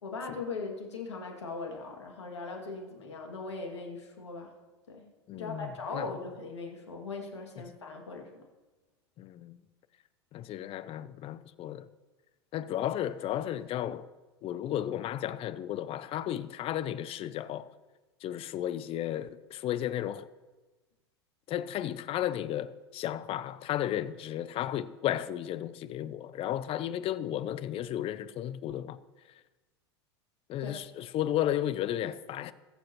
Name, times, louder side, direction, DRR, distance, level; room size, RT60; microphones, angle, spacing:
voice 1, 0.0-4.5 4.9-5.1 5.3-8.4 30.6-30.7, left 3 dB, 85° left, 2.4 m, -39 dB
voice 2, 5.3-6.1 9.2-9.6 10.3-11.9 12.5-14.1 14.4-17.7 18.2-20.3 21.5-29.0 30.5-32.5, left 12 dB, 40° left, 0.7 m, -34 dB
22.0 x 7.6 x 3.1 m
hypercardioid pair, 85°, 14 cm